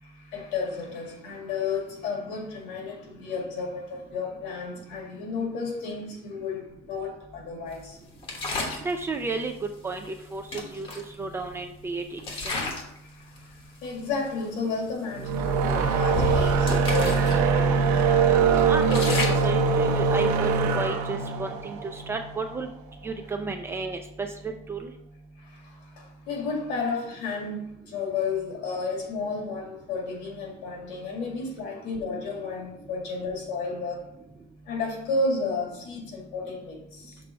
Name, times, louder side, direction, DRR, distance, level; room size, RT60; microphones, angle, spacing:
voice 1, 0.0-8.0 12.7-17.8 25.4-34.1 34.7-37.2, left 4 dB, 65° left, 2.1 m, -32 dB
sound 1, 8.2-8.9 10.0-10.1 10.5-11.7 12.2-13.0 13.3-13.6 14.3-14.4 14.7-14.9 15.5-17.4 17.7-17.8 18.3-20.8, left 3 dB, 30° left, 1.1 m, -32 dB
voice 2, 8.8-9.5 9.8-10.9 11.2-12.4 18.7-22.7 23.0-24.9, right 3 dB, 15° right, 0.4 m, -32 dB
sound 2, 15.2-22.5, right 5 dB, 55° right, 0.9 m, -23 dB
6.1 x 3.5 x 4.9 m
cardioid pair, 155°, 17 cm